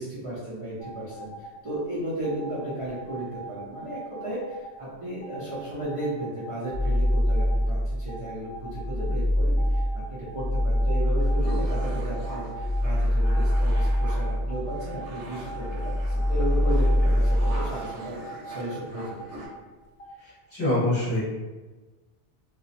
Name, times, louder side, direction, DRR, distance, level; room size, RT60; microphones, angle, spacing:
voice 1, 0.0-19.1, right 1 dB, 40° right, -9 dB, 0.4 m, -34 dB
sound 1, 0.8-1.8 2.2-4.7 5.2-7.6 7.9-9.1 9.6-12.8 13.2-19.5 20.0-20.1, right 3 dB, 50° left, 0.4 m, -42 dB
sound 2, 6.7-8.1 8.5-15.1 15.4-17.7, equal, 75° left, 0.9 m, -24 dB
sound 3, 11.2-19.5, right 1 dB, 85° right, 0.9 m, -42 dB
voice 2, 20.2-21.2, left 1 dB, 25° left, -10 dB, 0.9 m, -25 dB
2.3 x 2.0 x 2.6 m, 1.2 s
omnidirectional pair, 1.2 m